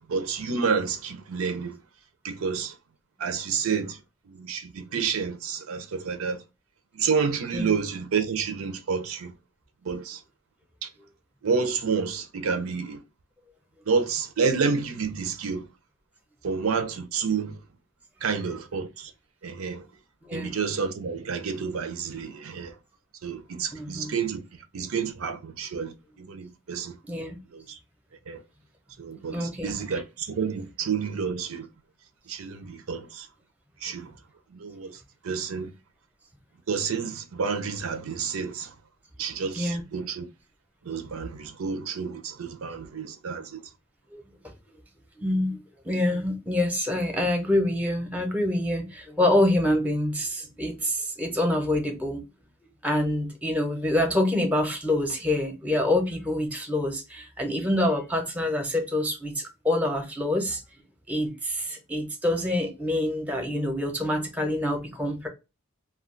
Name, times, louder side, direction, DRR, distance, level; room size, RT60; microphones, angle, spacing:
voice 1, 0.1-1.8 2.2-2.7 3.2-4.0 4.3-6.4 6.9-9.3 9.8-10.2 10.8-10.9 11.4-13.0 13.9-15.6 16.4-17.6 18.2-19.1 19.4-19.8 20.3-22.7 23.2-24.4 24.7-26.9 27.5-27.8 28.3-28.4 29.0-31.7 32.3-33.3 33.8-34.1 34.5-35.0 35.2-35.7 36.7-38.7 39.2-40.3 40.9-43.6, right 5 dB, 85° right, 0.5 m, -29 dB
voice 2, 20.2-20.6 23.7-24.1 27.1-27.4 29.3-30.0 39.5-39.8 44.1-44.2 45.2-45.6 45.8-52.2 52.8-60.6 61.1-65.3, left 1 dB, 5° right, 0.6 m, -26 dB
2.3 x 2.2 x 3.7 m
head